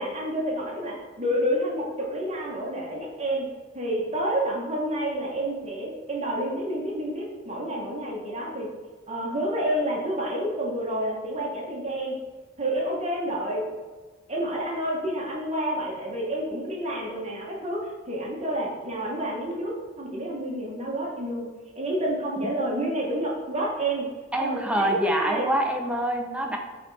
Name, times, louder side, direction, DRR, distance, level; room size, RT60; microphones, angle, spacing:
voice 1, 0.0-3.5 3.7-8.7 9.1-12.2 12.6-13.7 14.3-21.5 21.7-24.1 24.4-25.5, right 1 dB, 30° right, -3 dB, 1.2 m, -29 dB
voice 2, 24.3-26.6, right 1 dB, 5° right, 2 dB, 0.6 m, -25 dB
6.8 x 3.4 x 4.1 m, 1.4 s
head